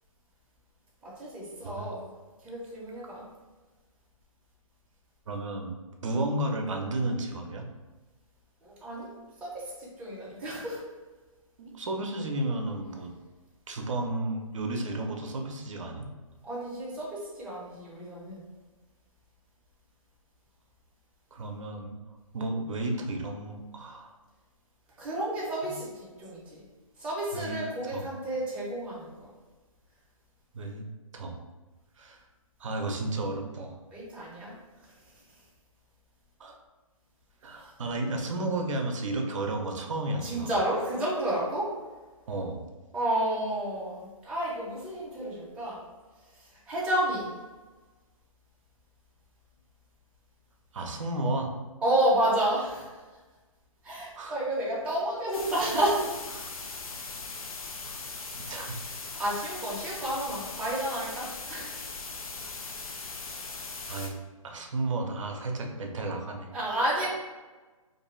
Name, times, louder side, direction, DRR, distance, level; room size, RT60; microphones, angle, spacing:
voice 1, 1.0-2.1 2.4-3.3 8.6-9.1 9.4-10.8 16.4-18.4 25.0-26.6 27.0-29.3 33.9-34.5 40.2-41.8 42.9-45.8 46.3-47.3 51.8-53.0 53.8-56.3 59.2-61.8 66.5-67.1, right 1 dB, 5° right, -7 dB, 0.6 m, -31 dB
voice 2, 5.3-5.8 6.0-7.6 11.6-13.1 13.7-16.1 21.3-22.0 22.3-24.1 25.6-25.7 27.3-27.6 27.9-28.1 30.5-30.8 31.1-31.4 32.0-32.2 32.6-33.7 36.4-36.6 37.4-40.5 42.3-42.6 50.7-51.5 54.2-54.4 56.3-56.5 57.9-58.0 58.4-58.8 63.9-64.1 64.4-66.5 67.0-67.1, right 2 dB, 60° right, 3 dB, 0.6 m, -32 dB
sound 1, 55.3-64.1, left 4 dB, 85° left, 0.5 m, -39 dB
2.5 x 2.2 x 3.1 m, 1.3 s
hypercardioid pair, 145°, 18 cm